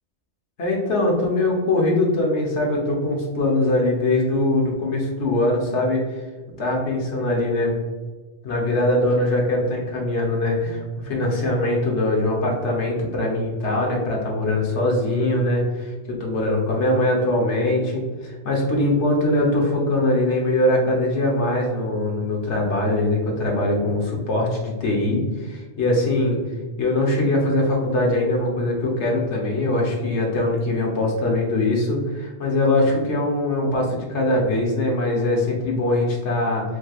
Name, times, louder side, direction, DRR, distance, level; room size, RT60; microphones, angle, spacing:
voice 1, 0.6-6.0 6.6-7.7 8.4-26.4 26.8-36.6, left 1 dB, 75° left, -1 dB, 1.2 m, -22 dB
4.8 x 3.2 x 2.4 m, 1.3 s
omnidirectional pair, 1.2 m